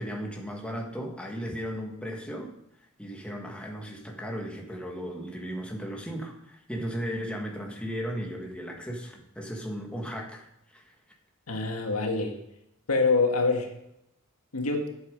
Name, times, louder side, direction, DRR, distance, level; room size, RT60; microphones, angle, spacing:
voice 1, 0.0-2.5 3.0-10.9, equal, 5° left, 0 dB, 1.6 m, -36 dB
voice 2, 11.5-12.3 12.9-13.7 14.5-14.9, left 3 dB, 80° left, 3 dB, 1.7 m, -25 dB
12.0 x 8.1 x 5.2 m, 0.80 s
head